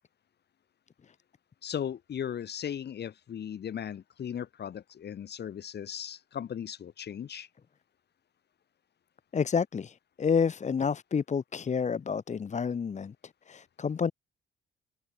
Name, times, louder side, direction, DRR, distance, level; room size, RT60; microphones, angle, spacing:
voice 1, 1.6-7.5, left 9 dB, 55° left, 2.7 m, -37 dB
voice 2, 9.3-13.1 13.5-14.1, left 6 dB, 35° left, 1.1 m, -29 dB
cardioid pair, 90°, 20 cm